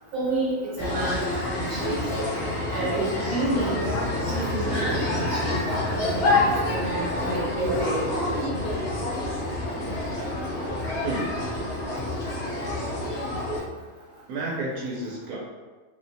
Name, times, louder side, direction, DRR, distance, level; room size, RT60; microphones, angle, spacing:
voice 1, 0.1-1.2 1.5-2.0 2.7-3.8 4.1-8.0, right 2 dB, 65° right, -5 dB, 1.2 m, -29 dB
sound 1, 0.8-13.6, left 2 dB, 55° left, 0.8 m, -27 dB
voice 2, 11.0-11.5 14.3-15.4, right 2 dB, 90° right, -4 dB, 1.1 m, -31 dB
2.7 x 2.2 x 2.6 m, 1.4 s
omnidirectional pair, 1.5 m